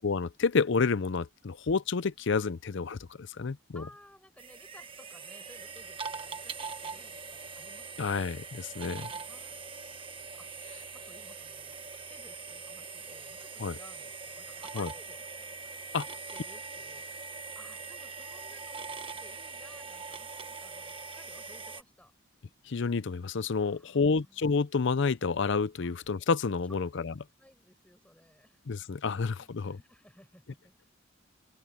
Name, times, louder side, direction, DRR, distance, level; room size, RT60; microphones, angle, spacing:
voice 1, 0.0-3.8 8.0-9.1 13.6-13.8 14.8-14.9 15.9-16.0 22.7-27.1 28.7-29.8, left 4 dB, 60° left, 0.6 m, -29 dB
voice 2, 3.7-8.1 8.4-8.8 9.3-10.7 10.9-11.8 12.1-15.2 16.0-22.1 23.6-24.6 25.7-25.9 26.6-26.9 27.4-30.9, left 1 dB, 5° left, 6.6 m, -58 dB
sound 1, 4.4-21.8, right 4 dB, 25° right, 1.3 m, -42 dB
open air
head